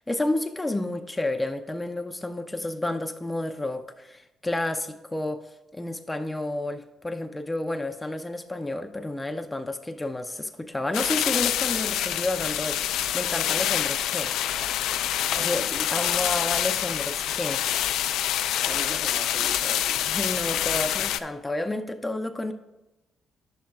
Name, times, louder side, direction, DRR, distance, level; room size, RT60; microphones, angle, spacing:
voice 1, 0.0-14.3 15.4-15.6 15.9-17.6 20.1-22.5, left 2 dB, 15° left, 6 dB, 0.5 m, -30 dB
sound 1, 10.9-21.2, left 11 dB, 90° left, 0.4 m, -26 dB
voice 2, 15.3-16.6 18.6-20.0, right 2 dB, 25° right, 7 dB, 0.7 m, -40 dB
10.0 x 7.4 x 2.3 m, 0.98 s
cardioid pair, 90°, 0 cm